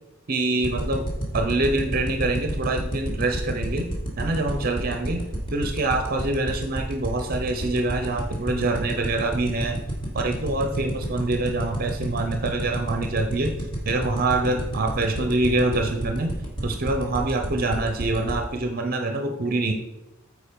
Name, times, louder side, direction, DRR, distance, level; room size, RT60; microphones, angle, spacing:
voice 1, 0.3-1.1 1.3-3.9 4.2-5.2 5.5-9.8 10.1-13.5 13.9-16.3 16.6-19.7, right 2 dB, 45° right, 5 dB, 0.6 m, -25 dB
sound 1, 0.6-18.3, right 1 dB, 25° left, 2.2 m, -29 dB
9.0 x 4.7 x 5.2 m, 1.0 s
head